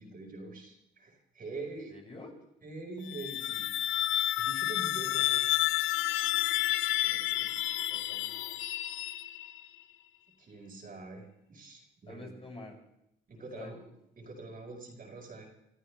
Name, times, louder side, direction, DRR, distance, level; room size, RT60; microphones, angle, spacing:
voice 1, 0.0-1.9 2.6-3.7 4.4-5.4 10.4-12.3 13.3-13.9 14.2-15.5, right 3 dB, 45° right, 0 dB, 5.1 m, -44 dB
voice 2, 1.9-2.4 7.0-8.5 12.1-12.8 13.4-13.7, left 2 dB, 30° left, -1 dB, 6.9 m, -49 dB
sound 1, 3.0-9.6, left 14 dB, 85° left, 0.6 m, -30 dB
28.5 x 14.0 x 3.4 m, 0.80 s
cardioid pair, 90°, 20 cm